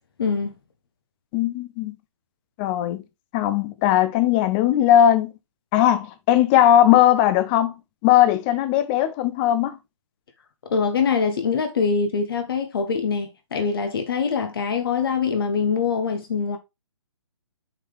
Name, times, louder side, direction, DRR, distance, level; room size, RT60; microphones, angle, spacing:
voice 1, 0.2-0.5 10.7-16.6, left 5 dB, 50° left, 1.1 m, -23 dB
voice 2, 1.3-2.0 2.6-3.0 3.3-5.3 5.7-7.7 8.0-9.8, left 11 dB, 20° left, 0.6 m, -18 dB
7.2 x 4.7 x 3.4 m
figure-of-eight pair, 135°, 16 cm